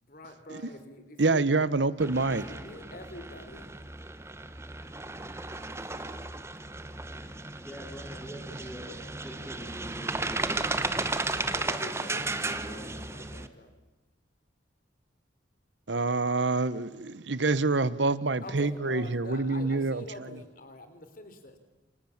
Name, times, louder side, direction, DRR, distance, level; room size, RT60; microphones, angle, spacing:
voice 1, 0.0-1.4 2.3-3.7 11.0-13.7 18.4-21.6, left 1 dB, 45° left, 3.8 m, -46 dB
voice 2, 1.2-2.4 15.9-20.0, right 3 dB, 70° right, 1.1 m, -26 dB
sound 1, 2.0-13.5, right 2 dB, 15° right, 1.2 m, -35 dB
voice 3, 7.6-10.6, equal, 5° left, 3.4 m, -44 dB
29.0 x 27.5 x 7.4 m
head